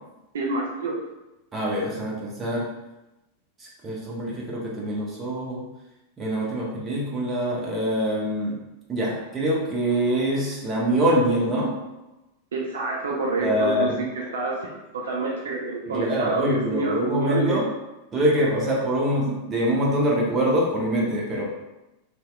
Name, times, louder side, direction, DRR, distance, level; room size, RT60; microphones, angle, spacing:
voice 1, 0.3-0.9 12.5-13.9 14.2-14.6 14.9-17.6, right 3 dB, 65° right, -2 dB, 0.3 m, -27 dB
voice 2, 1.5-2.7 3.6-5.6 6.2-8.5 8.9-11.7 13.4-14.0 15.9-17.7 18.1-21.4, right 1 dB, 20° right, -4 dB, 0.6 m, -24 dB
2.7 x 2.0 x 2.2 m, 0.98 s
figure-of-eight pair, 90°, 0 cm